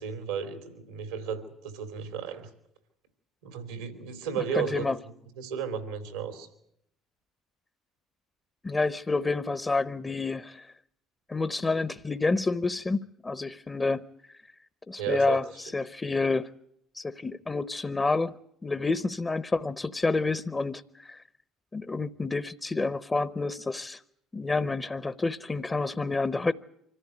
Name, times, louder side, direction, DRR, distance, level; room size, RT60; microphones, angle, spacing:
voice 1, 0.0-2.5 3.4-4.8 5.4-6.5 15.0-15.4, right 7 dB, 85° right, 7 dB, 3.1 m, -34 dB
voice 2, 4.4-4.9 8.6-10.7 11.3-14.0 14.9-16.5 16.9-18.3 18.6-21.2 21.7-24.0 24.3-26.5, left 3 dB, 20° left, 14 dB, 0.8 m, -29 dB
25.0 x 14.5 x 9.5 m, 0.75 s
hypercardioid pair, 70°, 0 cm